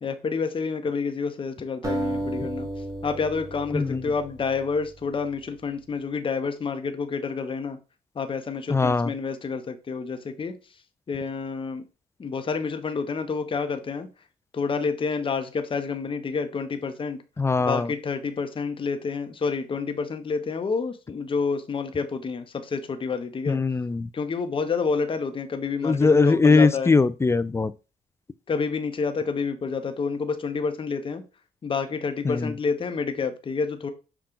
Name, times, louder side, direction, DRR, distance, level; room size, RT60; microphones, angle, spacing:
voice 1, 0.0-2.7 3.0-7.8 8.1-10.6 11.1-11.8 12.2-14.1 14.5-17.2 17.7-23.6 24.1-26.9 28.5-31.2 31.6-33.9, left 5 dB, 35° left, 0.7 m, -29 dB
sound 1, 1.8-5.1, right 1 dB, 20° right, 1.5 m, -33 dB
voice 2, 8.7-9.1 17.4-17.9 23.5-24.1 25.8-27.7 32.2-32.5, left 4 dB, 15° left, 0.3 m, -21 dB
5.7 x 2.3 x 3.8 m
supercardioid pair, 70°, 15 cm